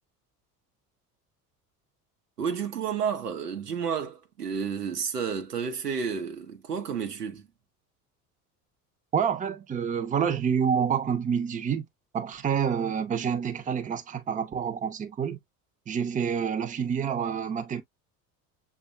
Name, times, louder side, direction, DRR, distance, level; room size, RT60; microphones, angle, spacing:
voice 1, 2.4-7.5, right 6 dB, 85° right, 0.8 m, -31 dB
voice 2, 9.1-11.9 12.1-15.4 15.9-17.8, right 7 dB, 15° right, 0.6 m, -28 dB
6.7 x 2.4 x 2.4 m
figure-of-eight pair, 65°, 46 cm